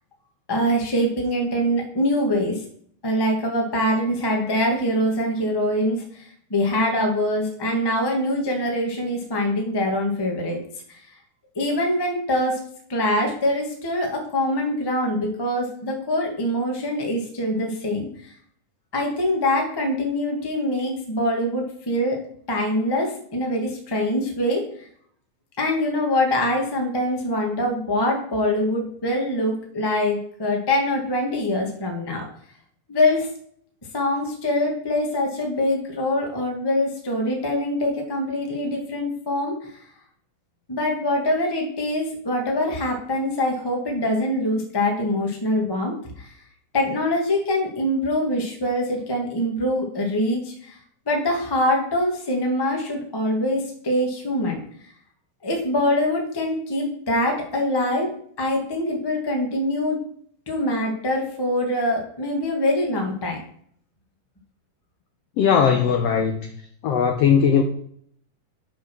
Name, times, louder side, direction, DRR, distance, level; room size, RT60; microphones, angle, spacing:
voice 1, 0.5-2.6 3.0-10.6 10.9-11.1 11.5-12.6 12.9-18.3 18.9-22.2 22.5-24.6 25.6-32.2 32.9-33.3 33.9-39.8 40.7-46.3 46.7-50.8 51.1-54.6 55.4-58.1 58.4-60.0 60.5-63.4, left 1 dB, 30° left, 1 dB, 0.4 m, -24 dB
voice 2, 65.4-66.5 66.8-67.6, left 7 dB, 80° left, 4 dB, 1.4 m, -18 dB
6.9 x 6.0 x 6.0 m, 0.63 s
omnidirectional pair, 3.8 m